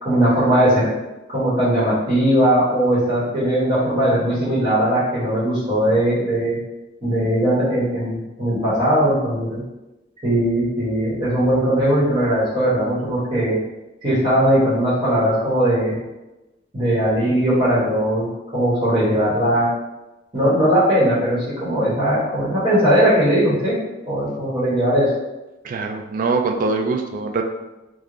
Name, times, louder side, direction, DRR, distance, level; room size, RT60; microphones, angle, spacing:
voice 1, 0.0-0.9 1.3-6.6 7.0-9.6 10.2-13.5 14.0-16.0 16.7-18.3 18.5-19.6 20.3-23.8 24.1-25.1, equal, 30° right, -11 dB, 1.1 m, -19 dB
voice 2, 25.6-27.4, right 3 dB, 45° right, 4 dB, 0.3 m, -23 dB
3.4 x 2.0 x 3.7 m, 1.0 s
head